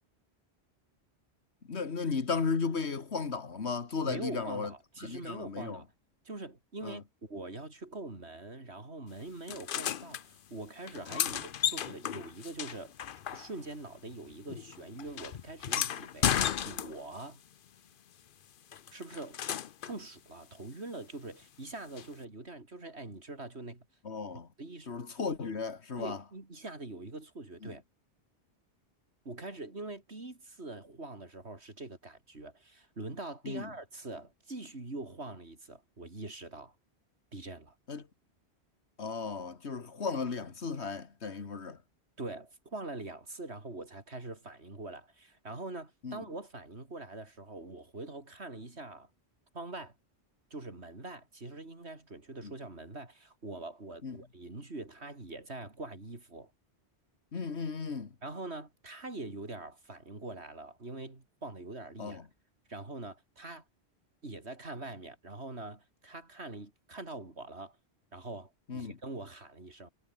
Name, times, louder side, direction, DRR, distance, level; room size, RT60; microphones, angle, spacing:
voice 1, 1.7-4.7 5.0-5.8 6.8-7.0 24.0-24.5 24.9-26.2 27.6-27.8 33.4-33.7 37.9-38.0 39.0-41.8 46.0-46.2 52.4-52.5 54.0-54.2 57.3-58.1 62.0-62.2 68.7-69.0, left 5 dB, 75° left, 2.1 m, -35 dB
voice 2, 4.0-5.9 6.2-12.9 13.3-17.4 18.9-19.4 19.8-23.9 24.6-24.9 26.0-27.8 29.2-36.7 37.3-37.8 42.2-49.1 49.5-50.0 50.5-56.5 58.2-62.2 62.7-63.6 64.2-67.8 68.1-69.9, right 2 dB, 75° right, 4.3 m, -43 dB
sound 1, 9.5-10.2 10.8-13.8 14.1-17.2 18.7-20.0 22.0-22.1, left 9 dB, 55° left, 0.8 m, -34 dB
omnidirectional pair, 1.1 m